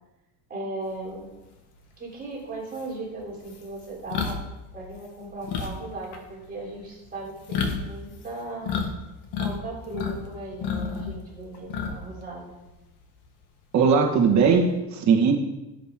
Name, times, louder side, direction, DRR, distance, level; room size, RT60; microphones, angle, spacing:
voice 1, 0.5-1.3 2.0-4.4 4.7-8.8 9.4-12.6, right 2 dB, 20° right, -5 dB, 3.5 m, -37 dB
sound 1, 2.2-2.3 2.7-8.9 9.2-10.2 10.5-12.2 12.5-12.7 14.1-14.7, left 6 dB, 55° left, 1.7 m, -31 dB
voice 2, 13.7-15.3, right 5 dB, 35° right, 1 dB, 1.8 m, -19 dB
16.5 x 7.9 x 3.8 m, 1.0 s
cardioid pair, 180°, 47 cm